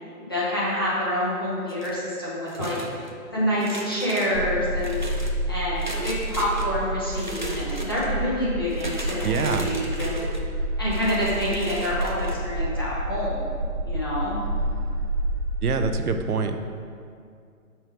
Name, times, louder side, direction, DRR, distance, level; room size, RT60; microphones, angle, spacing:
voice 1, 0.3-2.8 3.3-5.0 5.5-10.3 10.8-13.5 13.8-14.4, equal, 15° left, -8 dB, 0.7 m, -27 dB
Kitchen Cutlery Tub, 1.7-2.1 2.5-3.1 3.5-4.3 4.8-5.3 5.8-6.7 7.1-8.1 8.7-10.4 10.9-12.3, right 1 dB, 35° right, 0.4 m, -36 dB
sound 1, 4.3-15.9, right 1 dB, 15° right, 1.3 m, -29 dB
voice 2, 9.2-9.7 15.6-16.6, right 5 dB, 80° right, 7 dB, 0.7 m, -25 dB
6.2 x 5.6 x 4.5 m, 2.3 s
hypercardioid pair, 170°, 44 cm